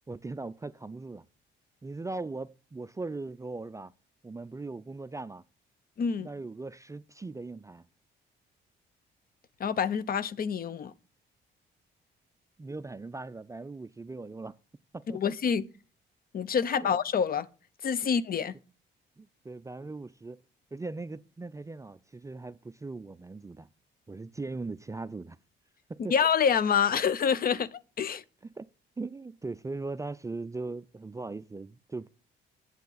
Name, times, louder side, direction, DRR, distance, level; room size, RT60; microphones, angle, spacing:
voice 1, 0.1-1.2 1.8-3.9 4.2-5.4 6.2-7.8 12.6-14.5 14.9-15.2 16.8-16.9 19.2-20.4 20.7-23.7 24.1-25.4 25.9-26.1 28.6-28.7 29.0-32.1, right 3 dB, 15° right, 0.4 m, -39 dB
voice 2, 6.0-6.3 9.6-10.9 15.1-15.7 16.3-17.5 17.8-18.6 26.0-28.2, left 7 dB, 45° left, 0.6 m, -27 dB
8.2 x 7.3 x 4.0 m
cardioid pair, 90°, 20 cm